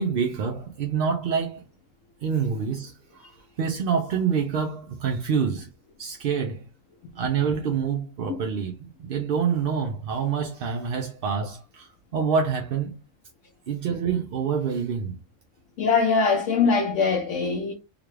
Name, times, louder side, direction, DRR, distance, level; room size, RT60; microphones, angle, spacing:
voice 1, 0.0-1.6 2.2-5.7 6.0-6.6 7.1-13.0 13.7-15.2, right 6 dB, 60° right, 0.6 m, -27 dB
voice 2, 15.8-17.7, left 5 dB, 65° left, 0.9 m, -22 dB
3.6 x 2.3 x 3.1 m
omnidirectional pair, 1.4 m